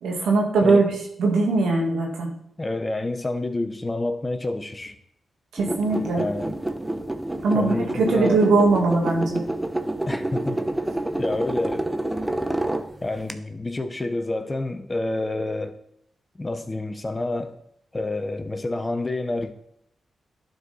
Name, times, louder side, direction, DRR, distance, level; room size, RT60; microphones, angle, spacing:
voice 1, 0.0-2.3 5.5-6.2 7.4-9.4, right 3 dB, 85° right, 2.0 m, -21 dB
voice 2, 2.6-5.0 6.2-6.6 7.5-8.4 10.1-10.6 11.2-11.9 13.0-15.8 16.4-17.5 17.9-19.5, left 2 dB, 30° left, 1.0 m, -28 dB
sound 1, 5.6-13.3, right 1 dB, 15° right, 0.8 m, -28 dB
11.5 x 4.8 x 4.2 m
supercardioid pair, 45°, 0 cm